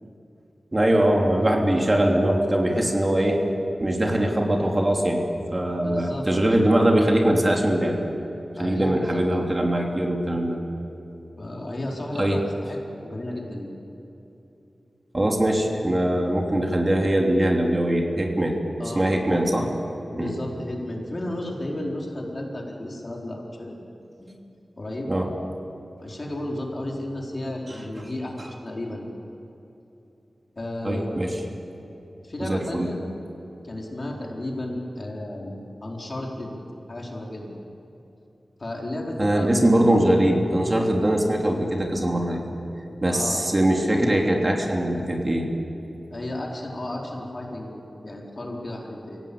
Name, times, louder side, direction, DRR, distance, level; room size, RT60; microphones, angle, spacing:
voice 1, 0.7-3.4 3.8-8.0 8.6-10.6 12.1-12.4 15.1-18.6 18.9-19.7 20.2-20.3 25.1-25.3 28.0-28.1 28.4-28.5 30.8-31.3 32.4-32.9 39.2-42.4 43.0-45.5, right 1 dB, 30° right, 0 dB, 3.2 m, -22 dB
voice 2, 5.8-6.3 8.6-9.2 11.4-13.7 18.8-19.1 20.1-23.8 24.2-24.3 24.8-25.1 26.0-29.1 30.5-31.3 32.2-33.0 33.6-36.5 36.9-37.5 38.6-40.0 43.1-43.5 46.1-49.2, left 1 dB, 45° left, -1 dB, 4.5 m, -33 dB
25.0 x 17.0 x 8.7 m, 2.9 s
wide cardioid pair, 70°, 0 cm